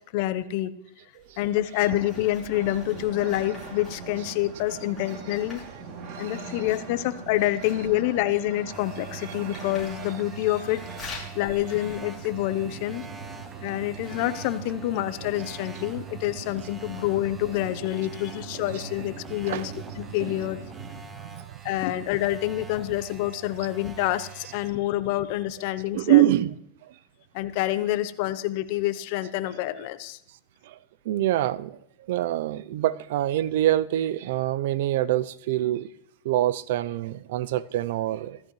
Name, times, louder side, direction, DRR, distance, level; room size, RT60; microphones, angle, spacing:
voice 1, 0.1-0.7 1.4-5.6 6.2-10.8 11.3-13.0 13.6-20.6 21.6-26.2 27.3-30.2, left 14 dB, 55° left, 0.8 m, -27 dB
Writing, 1.1-12.8, left 4 dB, 15° left, 6.6 m, -48 dB
sound 1, 1.8-21.0, right 4 dB, 45° right, 2.7 m, -41 dB
voice 2, 4.7-5.1 5.7-5.8 6.1-6.8 7.8-7.9 9.5-9.6 10.1-10.2 10.5-10.6 11.2-11.6 18.6-18.8 19.4-19.7 20.2-20.4 21.1-22.0 23.6-23.7 24.4-24.5 25.9-26.9 29.2-29.6 30.6-30.8 31.0-31.8 32.1-35.9 36.2-38.4, right 14 dB, 70° right, 0.5 m, -26 dB
sound 2, 8.7-24.7, right 6 dB, 15° right, 1.0 m, -44 dB
14.5 x 14.0 x 3.2 m
supercardioid pair, 130°, 0 cm